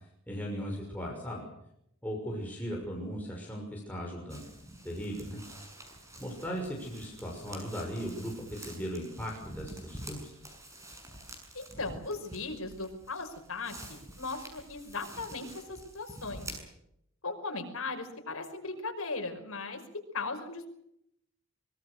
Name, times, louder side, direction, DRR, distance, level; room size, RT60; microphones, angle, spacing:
voice 1, 0.0-1.5 2.0-4.5 4.8-5.4 6.2-10.3, equal, 5° left, -2 dB, 6.1 m, -38 dB
sound 1, 4.3-16.6, right 1 dB, 15° right, 6.7 m, -48 dB
voice 2, 11.5-16.5 17.2-19.8 20.1-20.7, left 3 dB, 75° left, 4 dB, 5.4 m, -38 dB
24.0 x 22.5 x 6.6 m, 0.76 s
head